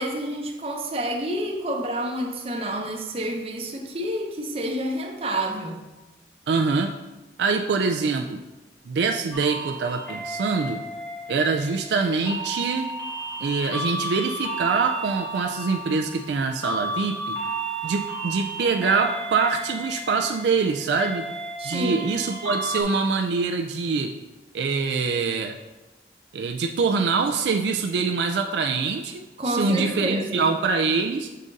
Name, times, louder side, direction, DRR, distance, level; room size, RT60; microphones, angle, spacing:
voice 1, 0.0-5.8 21.6-22.2 29.4-30.5, right 1 dB, 35° right, 1 dB, 0.7 m, -29 dB
voice 2, 6.5-6.9 7.4-8.4 8.9-10.8 11.3-12.9 13.4-17.4 17.8-21.3 21.6-24.1 24.5-25.6 26.3-31.3, right 4 dB, 75° right, 4 dB, 0.4 m, -24 dB
sound 1, 9.3-22.8, right 2 dB, 10° left, 1.6 m, -33 dB
6.5 x 3.7 x 3.9 m, 1.1 s
head